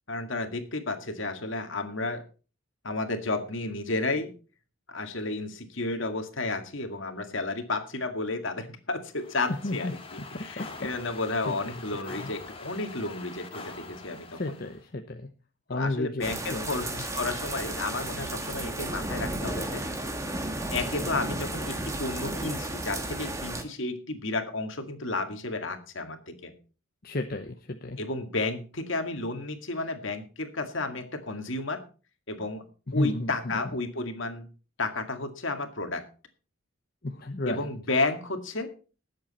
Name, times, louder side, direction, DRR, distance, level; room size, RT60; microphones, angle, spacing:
voice 1, 0.1-2.2 2.8-4.3 4.9-14.6 15.7-19.8 20.7-26.5 28.0-31.8 32.3-32.6 32.9-34.5 34.8-36.0 37.5-38.7, left 2 dB, 60° left, 6 dB, 2.1 m, -32 dB
sound 1, 9.1-14.8, left 3 dB, 25° left, 2.0 m, -44 dB
voice 2, 10.3-10.7 11.4-11.5 12.2-12.3 14.3-15.3 15.7-17.0 27.0-28.0 32.9-33.6 37.0-37.6, left 2 dB, 45° left, 6 dB, 0.8 m, -32 dB
sound 2, 16.2-23.6, right 1 dB, 15° right, 1.5 m, -33 dB
19.0 x 7.8 x 4.3 m, 0.36 s
head